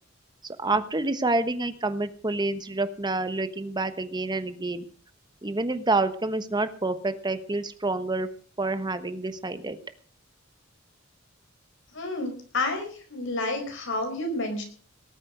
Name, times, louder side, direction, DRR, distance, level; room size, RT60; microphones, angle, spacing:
voice 1, 0.4-4.9 5.4-8.3 8.6-9.8, right 2 dB, 20° right, 11 dB, 1.1 m, -28 dB
voice 2, 11.9-14.6, left 2 dB, 65° left, 4 dB, 4.9 m, -30 dB
19.0 x 8.7 x 6.5 m, 0.44 s
head